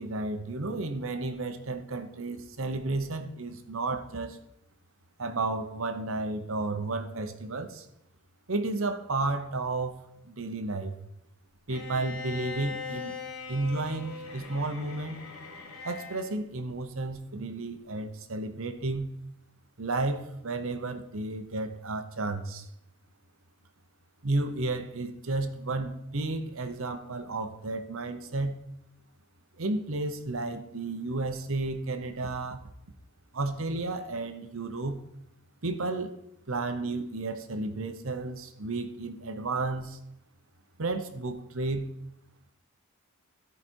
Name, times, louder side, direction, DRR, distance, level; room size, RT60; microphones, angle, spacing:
voice 1, 0.0-4.4 5.2-7.9 8.5-11.0 11.7-13.2 13.5-15.2 15.8-19.1 19.8-22.7 24.2-28.6 29.6-32.6 33.3-35.0 35.6-36.2 36.5-40.0 40.8-41.9, right 2 dB, 65° right, 8 dB, 0.9 m, -32 dB
Bowed string instrument, 11.7-16.4, left 4 dB, 70° left, 1.6 m, -40 dB
13.5 x 5.1 x 4.5 m, 0.82 s
head